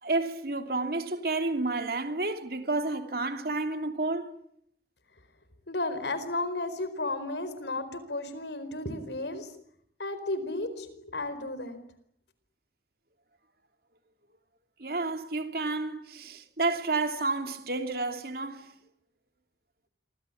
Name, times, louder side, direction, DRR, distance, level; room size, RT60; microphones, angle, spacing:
voice 1, 0.0-4.3 14.8-18.7, right 3 dB, 55° right, 2.8 m, -30 dB
voice 2, 5.7-9.5 10.0-11.8, left 2 dB, 75° left, 4.6 m, -33 dB
27.0 x 24.5 x 8.5 m
head